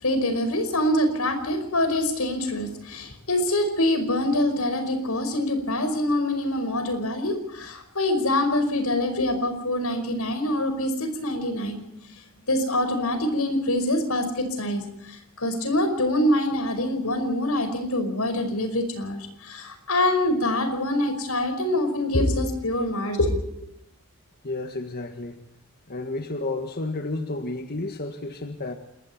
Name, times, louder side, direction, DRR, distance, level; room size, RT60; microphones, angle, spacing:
voice 1, 0.0-12.1 12.5-23.5, left 1 dB, 90° left, 9 dB, 5.3 m, -25 dB
voice 2, 24.4-25.4 25.9-28.7, left 2 dB, 50° left, 6 dB, 1.7 m, -31 dB
28.0 x 21.5 x 4.4 m, 0.77 s
head